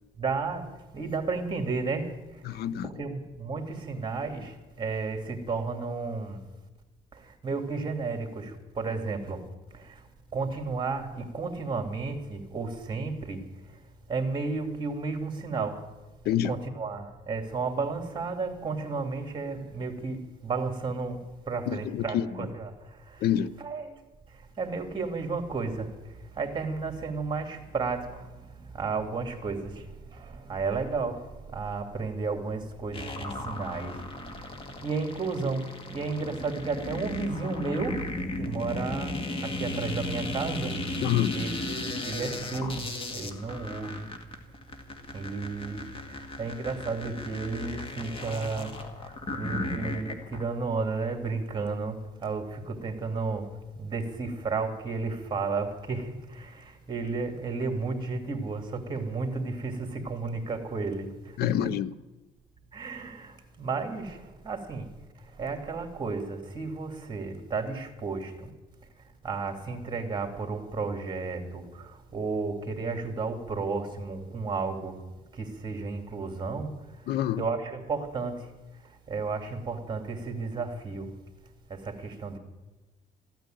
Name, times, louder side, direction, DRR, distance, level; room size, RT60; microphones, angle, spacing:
voice 1, 0.2-0.6 0.9-2.1 2.8-4.5 4.8-6.4 7.4-8.5 8.8-9.4 10.3-13.4 14.1-15.8 16.2-21.2 21.5-22.7 23.6-23.9 24.6-25.9 26.4-28.1 28.7-29.7 30.2-31.2 31.5-33.9 34.8-35.6 35.9-38.0 38.4-39.1 39.4-40.7 41.3-42.9 43.1-44.1 45.1-45.8 46.4-48.7 49.3-52.0 52.2-53.4 53.8-56.5 56.9-61.1 61.4-61.7 62.7-63.3 63.6-64.2 64.4-64.9 65.4-68.3 69.2-71.6 72.1-75.0 75.4-76.7 77.4-78.3 79.1-81.0 81.8-82.4, right 4 dB, 25° right, 2.6 m, -32 dB
voice 2, 2.4-2.9 16.2-16.5 21.7-22.5 23.2-23.5 41.0-41.3 61.4-61.9 77.1-77.4, left 11 dB, 70° left, 0.6 m, -27 dB
sound 1, 32.9-50.4, left 1 dB, 35° left, 2.0 m, -36 dB
14.5 x 9.2 x 9.1 m
cardioid pair, 110°, 17 cm